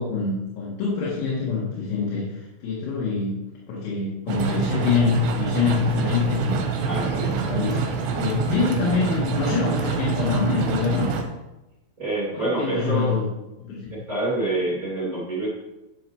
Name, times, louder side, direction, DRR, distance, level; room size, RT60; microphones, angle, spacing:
voice 1, 0.0-3.4 3.7-6.6 7.1-7.9 8.2-11.1 12.3-13.3 13.7-14.0, left 5 dB, 85° left, -6 dB, 4.4 m, -25 dB
sound 1, 4.3-11.2, right 5 dB, 70° right, 2.7 m, -26 dB
voice 2, 6.8-7.8 12.0-13.2 13.9-15.5, right 2 dB, 35° right, -8 dB, 1.4 m, -27 dB
12.5 x 6.7 x 3.1 m, 0.98 s
omnidirectional pair, 5.9 m